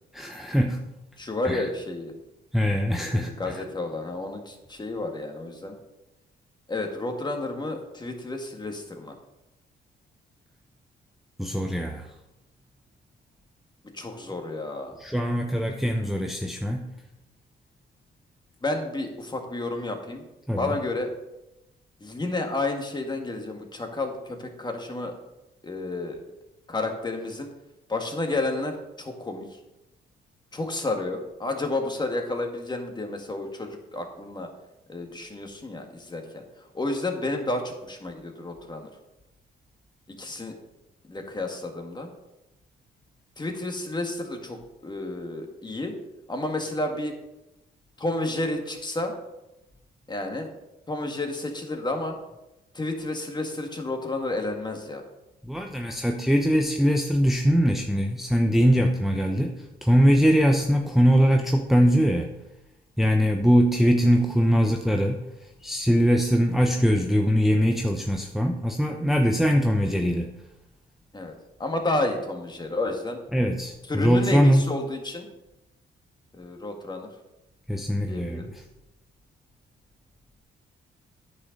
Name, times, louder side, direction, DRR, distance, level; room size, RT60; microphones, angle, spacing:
voice 1, 0.1-0.8 1.4-1.7 2.5-3.6 11.4-12.1 15.0-16.9 20.5-20.8 55.4-62.3 63.0-70.3 73.3-74.7 77.7-78.6, equal, ahead, 2 dB, 0.8 m, -22 dB
voice 2, 1.2-2.1 3.1-5.7 6.7-9.1 13.9-14.9 18.6-20.2 20.6-21.1 22.0-25.1 25.6-26.2 26.7-27.5 27.9-29.5 30.5-34.5 34.9-36.4 36.7-38.9 40.1-40.6 41.1-42.1 43.4-46.0 46.3-47.1 48.0-49.1 50.1-50.5 50.9-52.1 52.7-55.0 71.1-71.3 71.6-73.2 73.9-75.3 76.3-77.1 78.1-78.5, left 2 dB, 20° left, 4 dB, 1.8 m, -31 dB
9.7 x 6.4 x 5.2 m, 0.95 s
cardioid pair, 90°, 20 cm